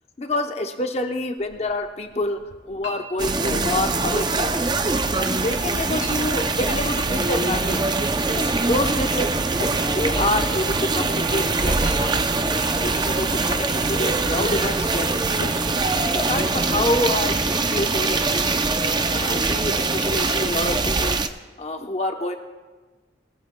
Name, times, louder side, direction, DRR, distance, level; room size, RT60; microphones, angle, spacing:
voice 1, 0.2-2.4 2.7-4.8 5.2-8.0 8.4-9.3 9.9-12.4 12.8-15.6 16.1-18.7 19.1-21.2 21.6-22.4, left 1 dB, 35° left, 5 dB, 0.8 m, -27 dB
Chink clink, 1.4-16.9, left 1 dB, 70° left, 1.9 m, -41 dB
sound 1, 3.2-21.3, right 3 dB, 25° right, 0.5 m, -23 dB
sound 2, 7.2-19.3, left 1 dB, 5° left, 1.1 m, -37 dB
22.0 x 14.0 x 2.2 m, 1.3 s
head